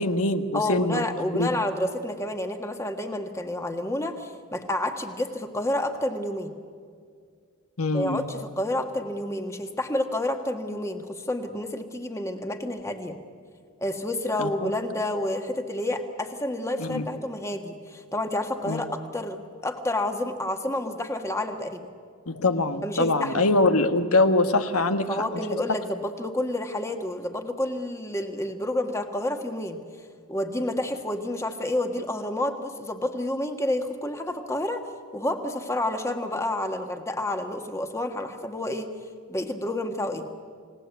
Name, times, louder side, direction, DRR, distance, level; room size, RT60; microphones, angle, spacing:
voice 1, 0.0-1.0 1.4-1.5 7.8-8.3 14.4-14.7 16.8-17.1 18.7-18.8 22.3-25.1, left 2 dB, 85° left, 8 dB, 1.5 m, -23 dB
voice 2, 0.5-6.5 7.9-13.2 13.8-21.9 22.8-23.5 25.1-29.8 30.3-34.8 35.1-39.0 39.3-40.3, left 1 dB, 15° left, 5 dB, 1.5 m, -29 dB
29.0 x 18.5 x 8.3 m, 2.1 s
head